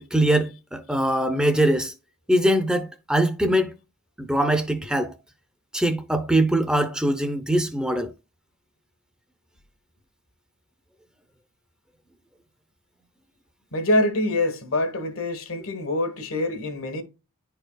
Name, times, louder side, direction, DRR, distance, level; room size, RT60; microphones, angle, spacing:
voice 1, 0.0-1.9 2.3-3.7 4.2-5.1 5.7-8.1, right 1 dB, 5° right, 0.5 m, -22 dB
voice 2, 13.7-17.0, left 1 dB, 75° left, 1.3 m, -25 dB
10.5 x 4.5 x 2.2 m
head